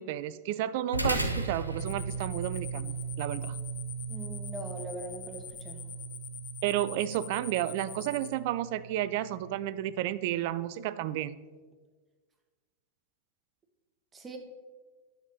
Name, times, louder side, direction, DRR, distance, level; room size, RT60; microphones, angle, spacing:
voice 1, 0.0-3.6 6.6-11.4, right 13 dB, 50° right, 16 dB, 0.4 m, -32 dB
sound 1, 0.9-9.6, right 3 dB, 85° right, 0.7 m, -37 dB
sound 2, 1.8-8.3, left 8 dB, 25° left, 0.7 m, -44 dB
voice 2, 4.1-5.8 14.1-14.4, right 2 dB, 15° right, 3 dB, 1.3 m, -41 dB
9.8 x 6.6 x 4.2 m, 1.4 s
figure-of-eight pair, 90°, 0 cm